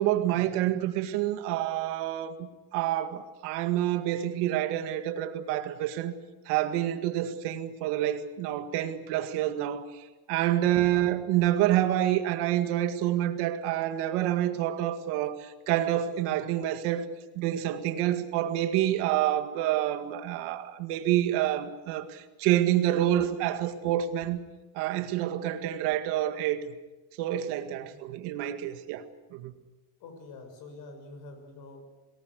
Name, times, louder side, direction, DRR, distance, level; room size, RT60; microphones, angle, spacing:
voice 1, 0.0-6.1 6.5-17.1 17.4-24.4 24.7-26.6 27.2-29.5, right 12 dB, 75° right, 8 dB, 2.1 m, -28 dB
voice 2, 30.0-31.8, left 3 dB, 50° left, 6 dB, 6.6 m, -46 dB
23.0 x 19.0 x 8.2 m, 1.1 s
cardioid pair, 170°, 40 cm